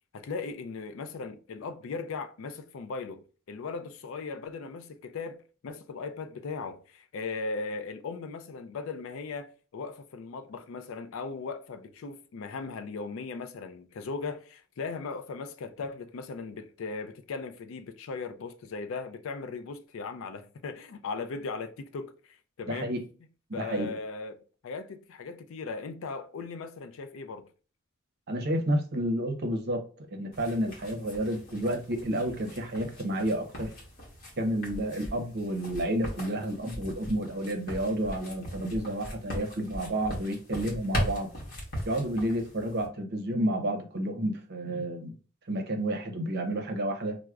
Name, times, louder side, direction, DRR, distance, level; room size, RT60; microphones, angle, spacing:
voice 1, 0.1-3.2 3.5-5.4 5.6-22.9 23.5-27.5, left 4 dB, 65° left, 0.4 m, -38 dB
voice 2, 22.7-23.0 23.5-23.9 28.3-33.7 34.4-41.3 41.9-45.2 45.5-47.2, right 1 dB, 50° right, 0.6 m, -30 dB
sound 1, 30.3-42.9, equal, 45° left, 1.1 m, -40 dB
sound 2, 34.7-35.1 35.7-36.1 36.7-37.1 37.7-38.1 38.7-39.1 39.7-40.1 40.7-41.1 41.7-41.8, equal, 25° left, 1.1 m, -40 dB
4.5 x 2.0 x 2.3 m
head